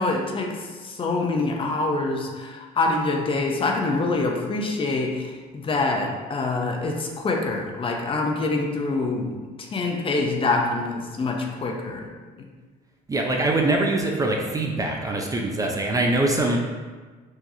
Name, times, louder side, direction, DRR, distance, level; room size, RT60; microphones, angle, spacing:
voice 1, 0.0-12.1, left 3 dB, 30° left, 1 dB, 0.6 m, -25 dB
voice 2, 13.1-16.6, right 2 dB, 20° right, 0 dB, 0.4 m, -23 dB
4.7 x 2.9 x 2.7 m, 1.4 s
cardioid pair, 110°, 17 cm